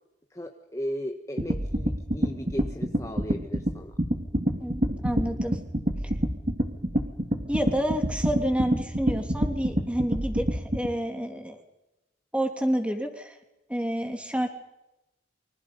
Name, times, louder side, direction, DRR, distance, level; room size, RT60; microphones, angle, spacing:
voice 1, 0.3-3.9, equal, 15° left, 4 dB, 1.4 m, -36 dB
sound 1, 1.4-10.9, equal, 35° right, 2.7 m, -26 dB
voice 2, 4.6-5.6 7.5-11.6 12.3-13.4 13.7-14.5, equal, 5° right, 4 dB, 3.1 m, -29 dB
29.0 x 25.0 x 5.5 m, 0.92 s
head